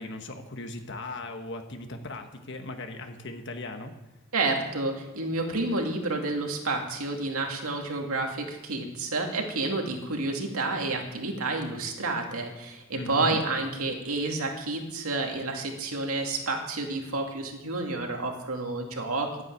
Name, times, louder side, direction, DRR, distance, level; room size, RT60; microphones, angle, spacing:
voice 1, 0.0-3.9 12.9-13.4, left 2 dB, 55° left, 6 dB, 1.6 m, -38 dB
voice 2, 4.3-19.4, right 2 dB, 90° right, 2 dB, 2.5 m, -30 dB
11.5 x 9.8 x 8.6 m, 1.0 s
head